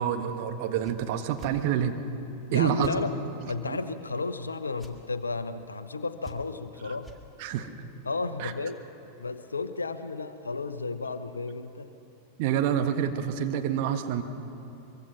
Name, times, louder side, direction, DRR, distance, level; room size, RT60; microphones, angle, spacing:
voice 1, 0.0-1.9 2.5-2.9 3.7-3.8 7.4-7.7 8.4-8.5 12.4-14.2, right 9 dB, 45° right, 6 dB, 1.5 m, -27 dB
sound 1, 0.8-1.0 1.4-1.6 2.8-3.0 4.8-5.0 6.2-6.6 7.0-7.2, right 1 dB, 5° left, 2.1 m, -46 dB
voice 2, 2.5-3.1 3.5-7.1 8.0-8.8 9.2-11.9, left 3 dB, 75° left, 12 dB, 1.0 m, -33 dB
23.5 x 23.5 x 6.0 m, 2.9 s
figure-of-eight pair, 90°, 0 cm